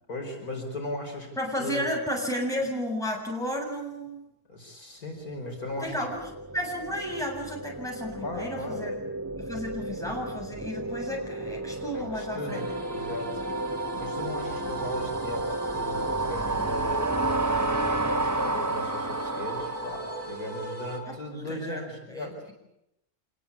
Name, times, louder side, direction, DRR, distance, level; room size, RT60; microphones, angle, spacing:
voice 1, 0.1-1.3 1.6-1.9 4.5-6.0 8.2-8.8 11.9-13.4 13.9-22.4, left 2 dB, 80° left, 1 dB, 5.5 m, -37 dB
voice 2, 1.4-4.3 5.8-6.2 6.5-8.9 9.4-12.7 21.1-21.2 21.5-21.8 22.1-22.3, equal, ahead, 0 dB, 7.6 m, -32 dB
sound 1, 5.5-20.8, right 2 dB, 15° right, 0.9 m, -32 dB
sound 2, 12.5-21.0, right 1 dB, 65° right, 5.1 m, -39 dB
26.5 x 20.5 x 8.6 m, 0.83 s
omnidirectional pair, 1.5 m